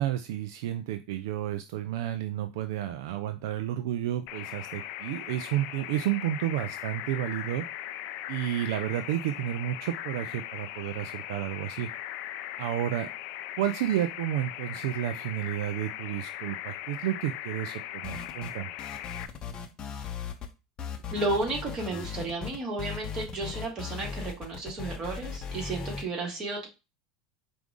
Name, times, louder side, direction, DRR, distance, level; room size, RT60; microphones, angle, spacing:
voice 1, 0.0-7.6 8.3-11.9 12.6-13.1 13.6-18.7, right 12 dB, 70° right, 9 dB, 0.3 m, -31 dB
sound 1, 4.3-19.3, left 13 dB, 60° left, 0.3 m, -39 dB
sound 2, 18.0-18.5 18.8-20.5 20.8-26.0, left 6 dB, 35° left, 0.7 m, -38 dB
voice 2, 21.1-26.7, right 2 dB, 35° right, -1 dB, 2.0 m, -33 dB
4.6 x 2.5 x 3.6 m, 0.28 s
hypercardioid pair, 90°, 2 cm